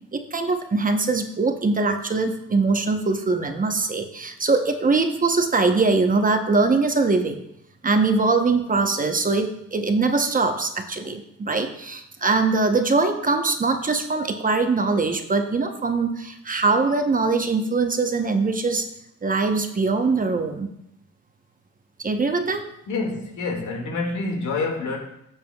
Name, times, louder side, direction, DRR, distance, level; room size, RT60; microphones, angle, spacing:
voice 1, 0.1-7.3 7.8-18.9 19.2-20.7 22.0-22.6, right 3 dB, 25° right, 6 dB, 0.9 m, -22 dB
voice 2, 22.9-25.0, left 3 dB, 75° left, 1 dB, 2.1 m, -27 dB
12.5 x 7.2 x 2.3 m, 0.77 s
cardioid pair, 90°, 30 cm